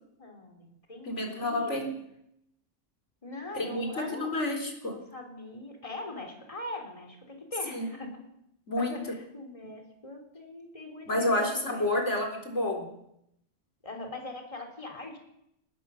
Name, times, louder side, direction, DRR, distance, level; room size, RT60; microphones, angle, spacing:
voice 1, 0.2-1.9 3.2-4.3 4.9-8.2 8.8-11.9 13.8-15.2, left 2 dB, 30° left, 3 dB, 3.6 m, -42 dB
voice 2, 1.0-1.9 3.5-4.9 7.7-7.9 8.7-9.0 11.1-12.9, left 1 dB, 75° left, 2 dB, 4.4 m, -29 dB
24.0 x 19.5 x 6.4 m, 0.80 s
omnidirectional pair, 1.2 m